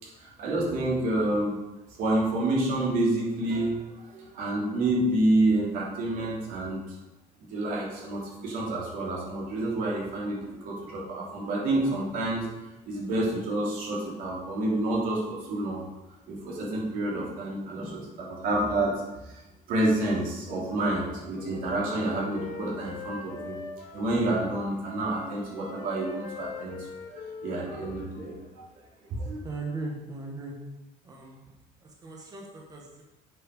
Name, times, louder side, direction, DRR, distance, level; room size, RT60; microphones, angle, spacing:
voice 1, 0.0-1.5 2.0-6.8 7.5-12.5 12.9-15.8 16.3-19.4 19.7-28.7 29.1-29.4, right 1 dB, 70° right, -4 dB, 3.1 m, -29 dB
Wind instrument woodwind instrument, 20.9-24.5 24.8-28.5, left 4 dB, 55° left, 1.1 m, -42 dB
voice 2, 29.4-30.5 31.0-31.4 31.8-33.0, right 3 dB, 25° right, -1 dB, 1.4 m, -38 dB
7.9 x 5.7 x 5.3 m, 1.0 s
cardioid pair, 165°, 15 cm